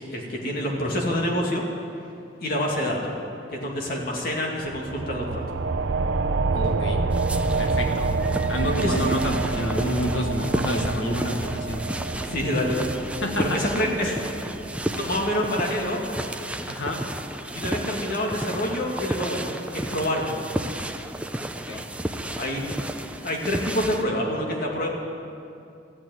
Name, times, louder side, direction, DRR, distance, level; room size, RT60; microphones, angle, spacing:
voice 1, 0.0-1.6 2.4-3.1 3.5-5.4 8.8-9.0 12.2-12.9 13.4-14.1 15.0-16.0 17.5-20.4 22.4-22.6 23.2-24.9, equal, 55° left, -1 dB, 2.3 m, -27 dB
sound 1, 4.6-15.8, right 3 dB, 80° right, 0.6 m, -28 dB
voice 2, 6.5-7.0 7.6-8.1 8.5-11.8 13.2-13.6 14.0-14.1 16.7-17.1 21.7-21.8, equal, 85° left, 3 dB, 1.5 m, -28 dB
sound 2, 7.1-24.0, right 1 dB, 5° right, 0.6 m, -32 dB
13.5 x 8.7 x 9.4 m, 2.5 s
head